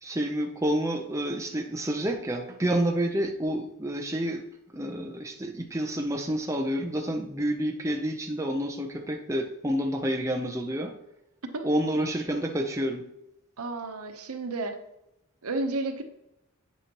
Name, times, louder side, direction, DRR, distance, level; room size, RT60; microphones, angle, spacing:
voice 1, 0.0-4.4 4.7-10.9 11.6-13.0, right 1 dB, 15° right, 2 dB, 0.6 m, -29 dB
voice 2, 13.6-14.8 15.4-16.0, right 2 dB, 85° right, 6 dB, 0.9 m, -31 dB
8.2 x 7.9 x 3.0 m, 0.85 s
head